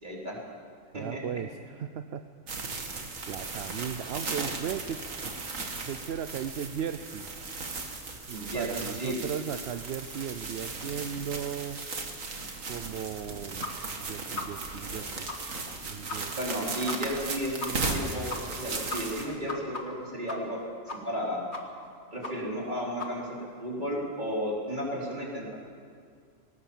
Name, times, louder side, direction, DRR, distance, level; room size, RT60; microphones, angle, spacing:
voice 1, 0.0-0.4 0.9-1.2 8.3-8.7 9.0-9.2 16.3-18.3 18.6-20.6 20.9-21.4 22.1-25.6, equal, 35° right, -4 dB, 4.6 m, -33 dB
voice 2, 0.9-2.2 3.3-5.3 5.9-7.3 8.3-11.8 12.7-15.3 15.8-16.3, right 8 dB, 60° right, 9 dB, 0.8 m, -36 dB
sound 1, 2.5-19.3, right 3 dB, 85° right, 2.2 m, -37 dB
sound 2, 13.6-13.7 14.0-14.1 14.4-14.5 14.9-15.0 15.3-15.4 15.7-15.8 16.1-16.2 16.5-16.6 16.9-17.0 17.2-17.3 17.6-17.7 18.0-18.1 18.3-18.6 18.9-20.6 20.9-21.2 21.5-21.9 22.2-22.3 22.6-22.7 23.0-23.1, left 3 dB, 55° left, 2.1 m, -36 dB
20.0 x 18.5 x 7.3 m, 2.2 s
omnidirectional pair, 1.3 m